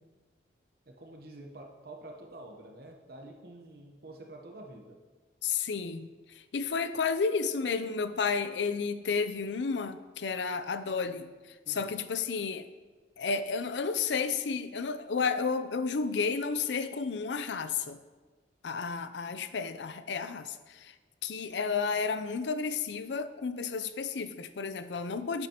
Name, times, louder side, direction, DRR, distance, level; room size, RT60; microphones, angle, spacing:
voice 1, 0.9-5.0 11.6-11.9, right 1 dB, 55° right, 1 dB, 0.9 m, -48 dB
voice 2, 5.4-12.7 13.2-18.0 18.6-20.9 21.2-25.5, left 5 dB, 80° left, 11 dB, 0.5 m, -32 dB
10.5 x 8.1 x 2.9 m, 1.3 s
head